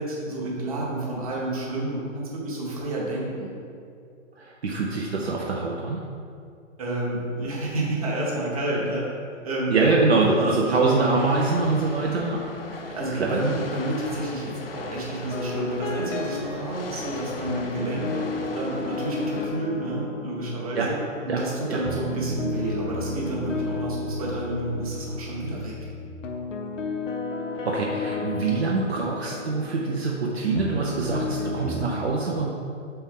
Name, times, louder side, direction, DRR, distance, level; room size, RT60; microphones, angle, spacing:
voice 1, 0.0-3.5 6.8-9.0 9.4-9.8 10.1-10.8 12.9-21.0 21.2-25.7, right 1 dB, 30° right, -5 dB, 1.1 m, -30 dB
voice 2, 4.4-6.0 9.7-13.4 20.8-20.9 21.3-21.4 21.7-21.8 27.6-32.5, right 3 dB, 55° right, -2 dB, 0.7 m, -24 dB
sound 1, 10.8-19.5, left 3 dB, 50° left, 0.5 m, -38 dB
sound 2, 15.3-16.5 17.5-31.9, left 3 dB, 70° left, 0.9 m, -33 dB
6.6 x 4.4 x 3.7 m, 2.4 s
hypercardioid pair, 175°, 39 cm